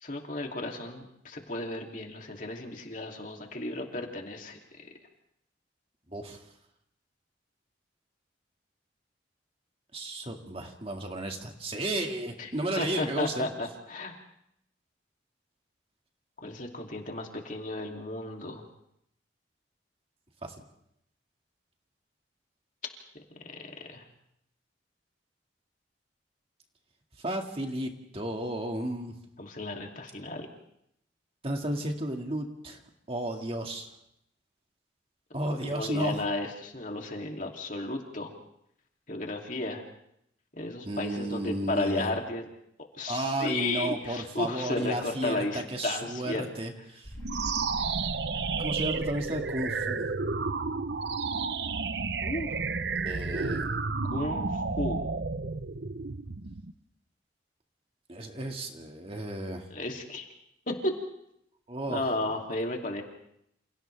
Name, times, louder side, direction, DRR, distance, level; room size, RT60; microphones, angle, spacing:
voice 1, 0.0-4.9 12.4-12.5 12.8-14.2 16.4-18.6 23.9-24.0 29.4-30.5 35.4-38.3 39.1-39.8 40.6-42.5 42.9-46.4 52.2-52.6 54.0-54.5 54.8-55.0 59.7-60.3 60.7-61.0 61.9-63.0, left 2 dB, 45° left, 1 dB, 2.8 m, -34 dB
voice 2, 6.1-6.4 9.9-13.5 20.4-20.5 27.2-29.1 31.4-32.8 33.1-33.9 35.3-36.2 40.8-42.1 43.1-47.1 48.6-50.1 53.1-53.7 58.1-59.7 61.7-62.1, right 1 dB, 30° right, 3 dB, 2.1 m, -33 dB
sound 1, 47.0-50.6, equal, 20° left, 5.6 m, -42 dB
sound 2, 47.2-56.7, right 4 dB, 65° right, 0.8 m, -31 dB
29.0 x 28.5 x 3.4 m, 0.76 s
head